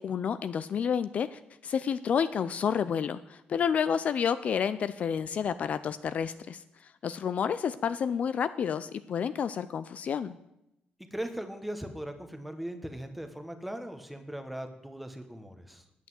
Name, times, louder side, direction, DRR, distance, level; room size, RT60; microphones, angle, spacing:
voice 1, 0.0-10.4, left 7 dB, 55° left, 13 dB, 0.4 m, -30 dB
voice 2, 11.1-15.8, right 1 dB, ahead, 6 dB, 1.2 m, -39 dB
9.1 x 8.0 x 7.5 m, 0.86 s
cardioid pair, 125°, 3 cm